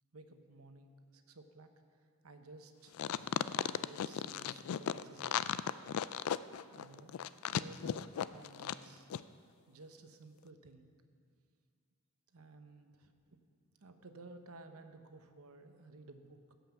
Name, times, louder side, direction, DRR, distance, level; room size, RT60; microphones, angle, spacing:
voice 1, 0.1-3.0 3.7-5.6 6.6-9.1 9.7-10.9 12.3-13.4 13.8-16.5, right 2 dB, 70° right, 7 dB, 0.9 m, -56 dB
sound 1, 2.9-8.8 9.1-9.2, left 9 dB, 70° left, 0.3 m, -36 dB
16.0 x 5.7 x 7.1 m, 2.2 s
head